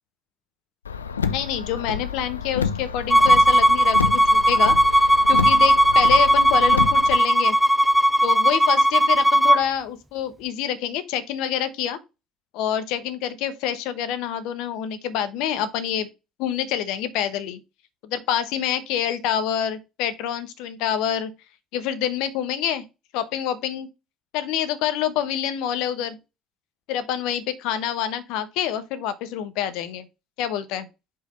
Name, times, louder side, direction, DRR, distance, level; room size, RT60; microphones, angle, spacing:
Car, 0.8-7.2, left 6 dB, 80° left, 0.4 m, -29 dB
voice 1, 1.3-7.6 8.2-12.0 12.5-16.1 16.4-17.6 18.0-21.3 21.7-22.8 23.1-23.9 24.3-26.2 26.9-30.1 30.4-30.9, left 10 dB, 60° left, 1.0 m, -27 dB
Bowed string instrument, 3.1-9.6, equal, ahead, 0.3 m, -17 dB
5.4 x 3.9 x 5.3 m
figure-of-eight pair, 55°, 0 cm